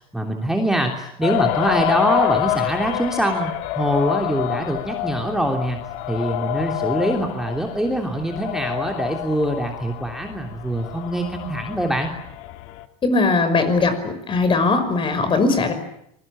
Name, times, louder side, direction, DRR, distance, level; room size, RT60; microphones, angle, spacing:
voice 1, 0.0-5.8 6.1-12.1, right 1 dB, 5° right, 2 dB, 3.1 m, -24 dB
sound 1, 1.2-12.9, left 15 dB, 70° left, 2.1 m, -27 dB
voice 2, 13.0-15.7, left 3 dB, 30° left, 10 dB, 5.8 m, -19 dB
27.0 x 22.5 x 8.7 m, 0.75 s
supercardioid pair, 120°, 18 cm